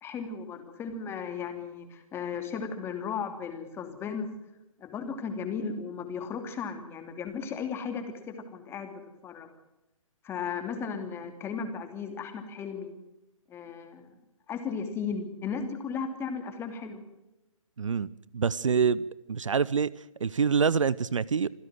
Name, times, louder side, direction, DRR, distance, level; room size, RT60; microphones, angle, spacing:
voice 1, 0.0-4.3 4.8-8.9 9.2-9.5 10.2-12.9 13.5-14.1 14.5-17.0, left 6 dB, 15° left, 6 dB, 2.9 m, -35 dB
voice 2, 17.8-18.1 18.3-19.9 20.2-21.5, right 6 dB, 65° right, 22 dB, 0.8 m, -26 dB
26.5 x 15.5 x 7.6 m, 0.95 s
figure-of-eight pair, 135°, 18 cm